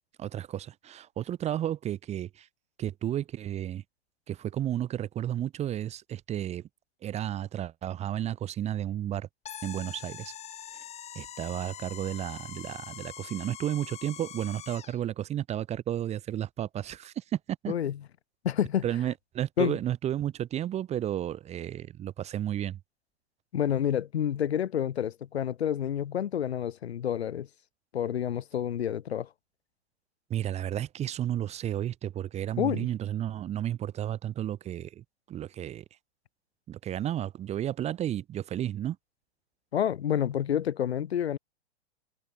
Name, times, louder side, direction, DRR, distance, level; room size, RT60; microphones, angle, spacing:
voice 1, 0.2-2.5 2.8-3.8 4.3-6.7 7.0-9.3 9.6-10.4 11.1-17.7 18.8-22.8 30.3-35.8 36.7-39.0, right 11 dB, 20° right, 0.9 m, -32 dB
sound 1, 9.5-15.0, left 9 dB, 20° left, 1.6 m, -44 dB
voice 2, 17.7-18.0 18.4-18.9 19.6-19.8 23.5-27.5 27.9-29.3 32.6-32.9 39.7-41.4, left 10 dB, 70° left, 1.9 m, -29 dB
hypercardioid pair, 115°, 32 cm